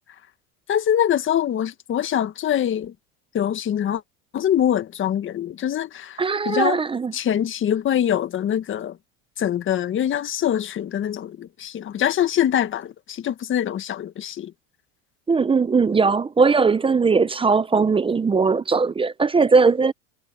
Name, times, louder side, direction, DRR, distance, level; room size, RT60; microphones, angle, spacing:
voice 1, 0.7-2.9 3.3-4.0 4.3-6.8 7.1-9.0 9.4-14.5, left 10 dB, 35° left, 1.7 m, -24 dB
voice 2, 6.2-7.1 15.3-19.9, right 4 dB, 15° right, 0.8 m, -19 dB
supercardioid pair, 115°, 35 cm